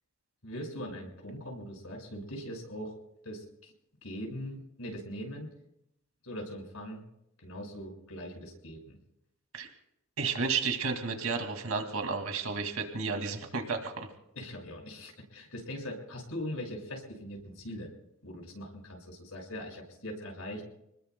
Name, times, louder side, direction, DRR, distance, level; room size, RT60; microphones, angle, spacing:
voice 1, 0.4-2.9 3.2-3.7 4.0-5.5 6.2-7.0 7.4-9.0 14.3-17.9 18.2-20.6, equal, 85° left, 1 dB, 5.8 m, -41 dB
voice 2, 10.2-14.1, right 4 dB, 75° right, 4 dB, 2.3 m, -32 dB
29.0 x 20.5 x 2.3 m, 0.81 s
head